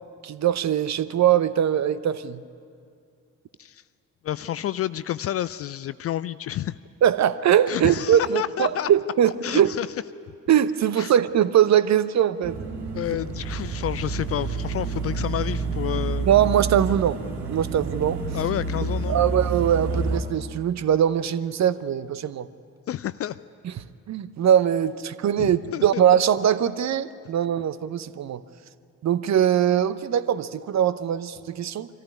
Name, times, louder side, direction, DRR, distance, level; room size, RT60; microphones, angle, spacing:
voice 1, 0.2-2.4 7.0-9.7 10.5-12.6 16.3-17.2 17.5-18.2 19.1-22.5 24.1-28.4 29.0-31.9, right 9 dB, 40° right, 15 dB, 0.9 m, -21 dB
voice 2, 4.2-6.8 7.7-8.9 9.4-9.9 11.0-11.1 12.9-16.3 18.3-19.2 22.9-23.4 25.4-26.0, left 12 dB, 35° left, 16 dB, 0.4 m, -29 dB
sound 1, 12.4-20.2, right 4 dB, 65° right, 2.0 m, -29 dB
24.5 x 14.5 x 9.4 m, 2.4 s
figure-of-eight pair, 45°, 43 cm